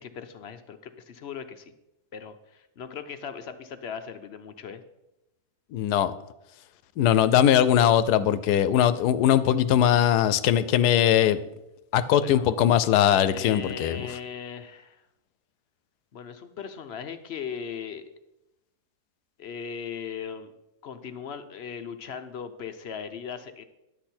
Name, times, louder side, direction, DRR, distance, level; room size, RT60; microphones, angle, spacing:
voice 1, 0.0-1.7 2.1-4.8 12.2-12.5 13.1-15.0 16.1-18.0 19.4-20.5 20.8-23.6, left 7 dB, 55° left, 10 dB, 0.7 m, -38 dB
voice 2, 5.7-6.1 7.0-11.4 11.9-14.1, left 10 dB, 90° left, 15 dB, 1.2 m, -21 dB
11.0 x 8.1 x 4.3 m, 0.91 s
omnidirectional pair, 1.7 m